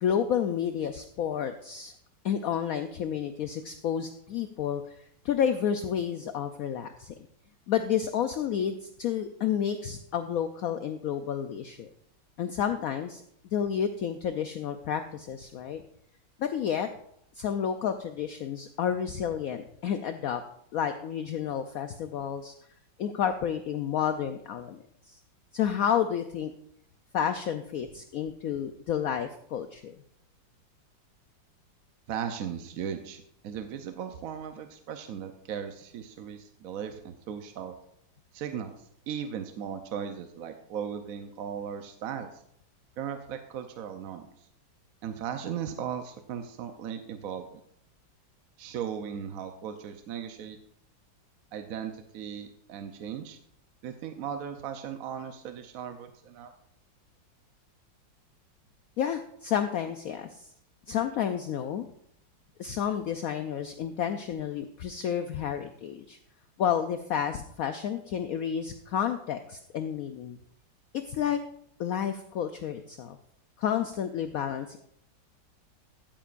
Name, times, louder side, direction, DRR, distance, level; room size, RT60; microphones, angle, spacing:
voice 1, 0.0-1.9 2.2-5.0 5.2-7.1 7.7-11.9 12.4-13.2 13.5-15.8 16.4-16.9 17.4-20.4 20.7-22.5 23.0-25.2 25.5-26.5 27.1-29.9 59.0-60.5 60.9-61.9 62.6-66.2 66.6-70.4 71.1-71.4 71.8-73.2 73.6-74.8, left 8 dB, 80° left, 8 dB, 0.7 m, -30 dB
voice 2, 32.1-37.8 38.3-38.7 39.1-42.3 43.0-44.2 45.0-47.6 48.6-50.6 51.5-53.4 53.8-56.5, right 8 dB, 65° right, 7 dB, 0.9 m, -37 dB
13.5 x 9.0 x 2.5 m, 0.71 s
omnidirectional pair, 2.1 m